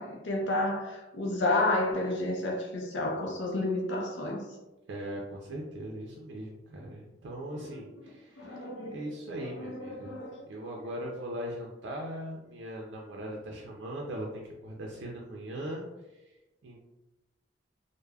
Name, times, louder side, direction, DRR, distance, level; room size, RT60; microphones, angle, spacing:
voice 1, 0.0-4.4 7.6-7.8 8.4-9.0 9.6-10.4, left 2 dB, 75° left, 0 dB, 0.5 m, -31 dB
voice 2, 4.9-10.2 10.5-15.9 16.1-16.2 16.6-16.8, right 1 dB, 75° right, -1 dB, 0.4 m, -39 dB
3.3 x 2.0 x 2.2 m, 1.0 s
head